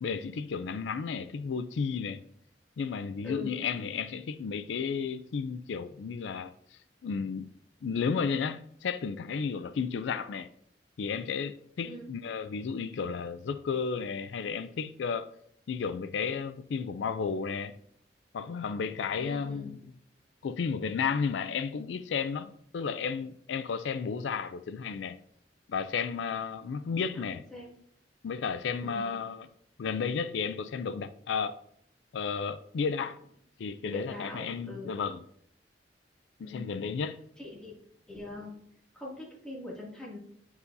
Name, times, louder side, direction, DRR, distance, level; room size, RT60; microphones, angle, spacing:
voice 1, 0.0-2.2 2.8-6.5 7.0-7.5 7.8-10.5 11.0-15.3 15.7-17.7 18.3-19.8 20.4-25.2 25.7-27.4 28.2-29.5 29.8-31.6 32.1-33.2 33.6-35.2 36.4-37.2, left 5 dB, 85° left, 0.4 m, -33 dB
voice 2, 19.2-19.7 27.0-27.2 27.5-27.7 28.8-29.1 33.8-35.0 36.4-36.7 37.4-37.7 38.1-38.5 38.9-40.2, left 2 dB, 5° left, 2.3 m, -42 dB
9.8 x 4.8 x 2.7 m
head